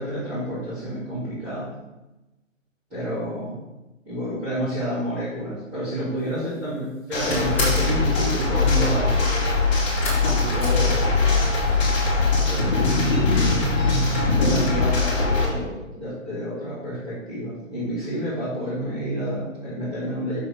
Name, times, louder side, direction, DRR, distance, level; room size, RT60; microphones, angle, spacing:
voice 1, 0.0-1.7 2.9-3.6 4.0-9.2 10.2-11.0 12.5-13.1 14.3-20.4, equal, 15° right, -15 dB, 2.2 m, -29 dB
sound 1, 6.3-6.7 6.9-8.0 10.0-11.5 11.8-12.4 12.7-12.8 13.2-13.3, left 1 dB, 5° left, 1.8 m, -31 dB
sound 2, 7.1-15.5, left 3 dB, 25° left, 1.8 m, -21 dB
6.3 x 3.9 x 4.9 m, 1.0 s
figure-of-eight pair, 155°, 39 cm